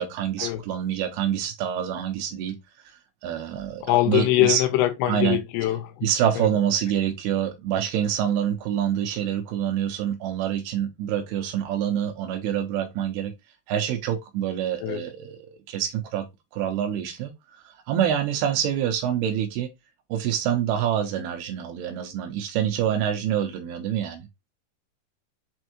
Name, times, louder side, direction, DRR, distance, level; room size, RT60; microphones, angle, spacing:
voice 1, 0.0-2.6 3.2-4.6 5.1-5.4 6.0-13.3 13.7-16.3 16.5-17.3 17.9-19.7 20.1-24.3, right 10 dB, 85° right, 2.7 m, -26 dB
voice 2, 3.8-6.1 6.4-6.5 14.8-15.0, left 15 dB, 85° left, 2.8 m, -23 dB
6.6 x 2.7 x 2.9 m
omnidirectional pair, 4.6 m